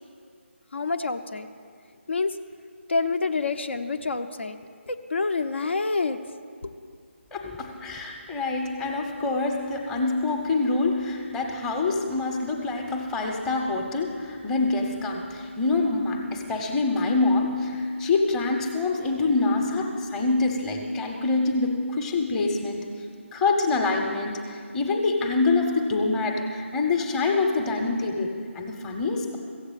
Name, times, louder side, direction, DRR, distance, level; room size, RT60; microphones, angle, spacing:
voice 1, 0.7-1.5 2.1-2.4 2.9-4.6 4.9-6.2 6.6-6.7, left 4 dB, 65° left, 7 dB, 0.7 m, -27 dB
voice 2, 7.3-22.8 23.3-29.4, left 3 dB, 10° left, 1 dB, 0.9 m, -26 dB
15.0 x 8.0 x 8.2 m, 2.2 s
figure-of-eight pair, 155°, 7 cm